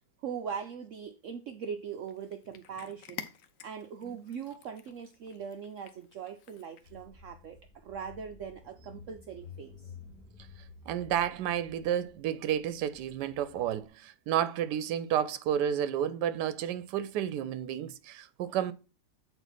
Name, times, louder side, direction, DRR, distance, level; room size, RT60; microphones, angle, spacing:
voice 1, 0.2-3.3 3.6-9.9, right 7 dB, 65° right, 0.8 m, -41 dB
Cat, 1.9-7.1, left 9 dB, 65° left, 0.9 m, -50 dB
Car / Engine, 6.8-13.9, left 4 dB, ahead, 3.2 m, -53 dB
voice 2, 10.9-18.7, right 10 dB, 85° right, 1.2 m, -31 dB
8.0 x 4.2 x 4.0 m
omnidirectional pair, 1.8 m